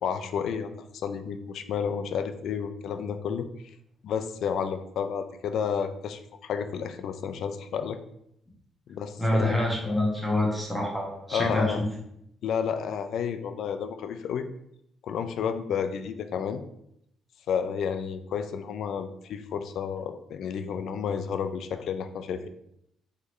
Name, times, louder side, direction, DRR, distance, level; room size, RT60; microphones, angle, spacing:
voice 1, 0.0-0.7 1.0-3.5 4.0-8.0 8.9-9.6 11.3-11.8 12.4-14.5 15.0-16.6 17.5-22.5, left 7 dB, 70° left, 9 dB, 0.3 m, -31 dB
voice 2, 9.2-11.7, left 1 dB, ahead, -3 dB, 1.2 m, -26 dB
3.8 x 3.2 x 3.0 m, 0.76 s
cardioid pair, 90°, 0 cm